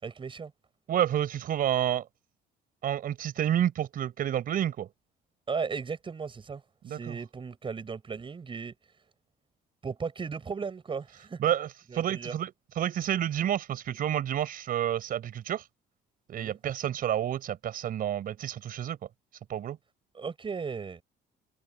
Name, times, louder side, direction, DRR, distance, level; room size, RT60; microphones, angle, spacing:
voice 1, 0.0-0.5 5.5-8.7 9.8-11.4 11.9-12.3 16.3-16.6 20.1-21.0, right 5 dB, 30° right, 6.3 m, -36 dB
voice 2, 0.9-2.0 2.8-4.9 6.8-7.2 11.4-11.7 11.9-15.6 16.3-19.0 19.5-19.8, right 10 dB, 60° right, 4.4 m, -29 dB
cardioid pair, 110°, 17 cm